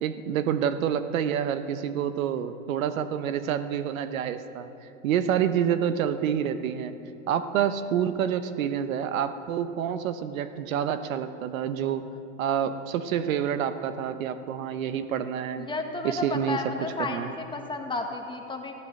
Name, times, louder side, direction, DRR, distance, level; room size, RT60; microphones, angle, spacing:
voice 1, 0.0-4.7 5.0-6.9 7.3-12.0 12.4-15.7 16.0-16.6 17.0-17.3, right 9 dB, 85° right, 11 dB, 1.0 m, -28 dB
voice 2, 15.6-18.7, left 3 dB, 10° left, 3 dB, 1.5 m, -32 dB
14.5 x 13.0 x 7.7 m, 2.9 s
supercardioid pair, 130°, 40 cm